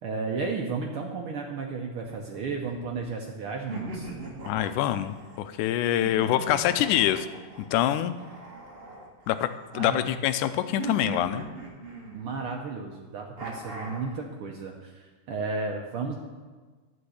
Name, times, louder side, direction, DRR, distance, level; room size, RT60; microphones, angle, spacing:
voice 1, 0.0-4.1 9.7-10.0 12.1-16.1, right 4 dB, 75° right, 1 dB, 1.3 m, -33 dB
sound 1, 2.0-3.1 3.7-5.4 6.0-9.8 10.8-12.5 13.4-14.2, right 2 dB, 30° right, 1.1 m, -40 dB
voice 2, 4.5-7.3 7.7-8.1 9.3-9.5 9.7-11.5, left 12 dB, 90° left, 11 dB, 2.1 m, -25 dB
11.5 x 5.3 x 7.9 m, 1.4 s
omnidirectional pair, 3.5 m